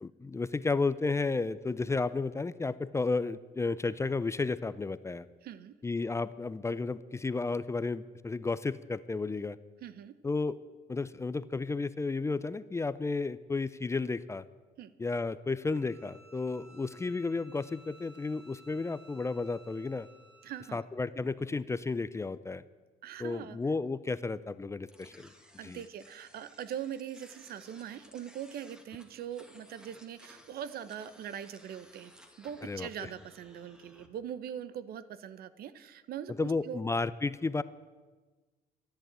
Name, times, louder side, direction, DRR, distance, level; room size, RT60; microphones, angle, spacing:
voice 1, 0.0-5.3 5.8-9.6 10.2-10.6 10.9-14.5 15.0-20.1 20.7-22.6 23.2-25.3 25.6-25.8 32.6-33.1 36.4-37.6, left 3 dB, 15° left, 15 dB, 0.5 m, -32 dB
voice 2, 5.4-5.7 9.8-10.1 14.8-14.9 20.4-20.8 23.0-23.6 25.6-32.1 32.4-36.8, right 9 dB, 65° right, 15 dB, 0.9 m, -42 dB
Bowed string instrument, 15.6-20.9, right 1 dB, 85° right, 3.2 m, -58 dB
sound 1, 24.9-34.1, equal, 5° right, 1.9 m, -58 dB
14.0 x 10.5 x 8.8 m, 1.3 s
cardioid pair, 110°, 17 cm